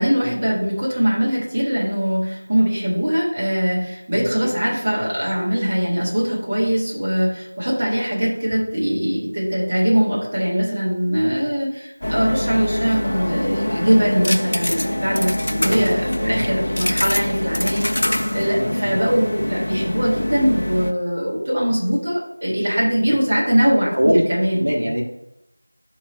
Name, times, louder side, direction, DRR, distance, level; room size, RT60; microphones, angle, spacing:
voice 1, 0.0-24.6, equal, 20° right, -8 dB, 1.8 m, -21 dB
voice 2, 4.1-4.5 12.1-12.3 15.6-16.4 18.6-19.0 23.9-24.2 24.6-25.0, equal, 55° right, -2 dB, 1.6 m, -23 dB
sound 1, 12.0-20.9, left 1 dB, 40° left, 0.5 m, -24 dB
7.0 x 3.2 x 5.3 m, 0.84 s
figure-of-eight pair, 175°, 0 cm